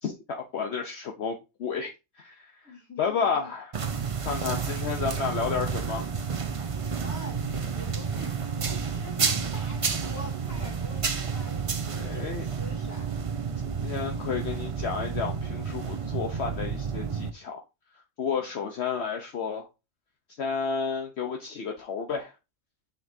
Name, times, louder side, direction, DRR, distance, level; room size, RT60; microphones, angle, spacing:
voice 1, 0.0-3.7 4.2-6.1 12.0-12.5 13.6-17.6 18.2-19.7 20.4-22.3, left 6 dB, 60° left, 1.0 m, -31 dB
voice 2, 2.6-3.5 7.0-7.4 7.7-13.1 18.2-18.7, left 1 dB, 15° left, 2.5 m, -45 dB
sound 1, 3.7-17.3, right 5 dB, 35° right, 0.6 m, -30 dB
6.9 x 6.4 x 2.7 m
omnidirectional pair, 1.3 m